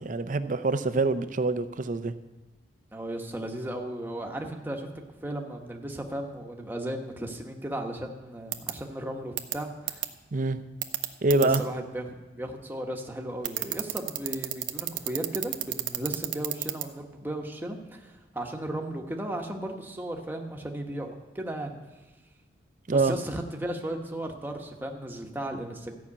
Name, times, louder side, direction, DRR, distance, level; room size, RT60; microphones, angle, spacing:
voice 1, 0.0-2.1 10.3-10.6 11.2-11.6 22.9-23.2, right 3 dB, 45° right, 11 dB, 0.6 m, -25 dB
voice 2, 2.9-4.9 5.2-10.0 11.4-21.8 22.9-25.9, right 1 dB, 10° right, 2 dB, 1.2 m, -35 dB
sound 1, 8.5-8.7 9.4-9.5 9.9-10.1 10.8-11.6 13.4-16.8, right 14 dB, 90° right, 0.8 m, -29 dB
13.5 x 5.9 x 8.5 m, 1.2 s
head